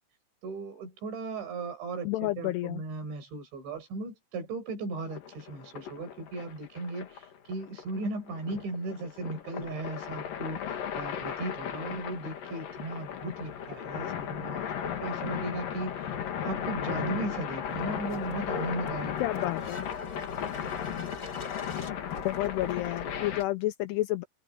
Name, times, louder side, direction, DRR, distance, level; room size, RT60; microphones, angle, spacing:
voice 1, 0.4-16.0 16.4-19.4, right 2 dB, 80° right, 8.2 m, -37 dB
voice 2, 2.0-2.8 19.2-19.9 22.2-24.2, left 17 dB, 80° left, 2.4 m, -30 dB
sound 1, 5.1-23.4, left 8 dB, 55° left, 3.4 m, -36 dB
sound 2, 17.6-23.5, left 3 dB, 25° left, 3.0 m, -45 dB
omnidirectional pair, 5.2 m